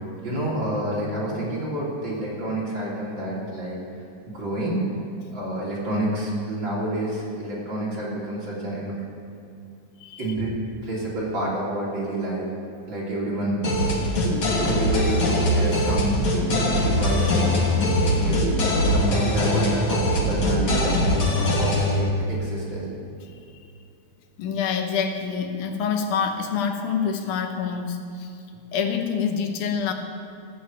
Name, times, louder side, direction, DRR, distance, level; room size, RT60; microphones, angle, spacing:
voice 1, 0.2-3.8 4.3-4.8 5.3-8.9 10.2-10.5 10.8-12.5 12.9-13.8 14.6-16.4 16.7-18.5 18.9-22.9, right 1 dB, 40° right, -6 dB, 3.7 m, -28 dB
sound 1, 13.6-22.0, left 1 dB, 45° left, 2.2 m, -22 dB
voice 2, 24.4-28.3 28.7-29.9, left 6 dB, 90° left, 5 dB, 2.5 m, -26 dB
14.5 x 7.1 x 8.5 m, 2.5 s
omnidirectional pair, 3.5 m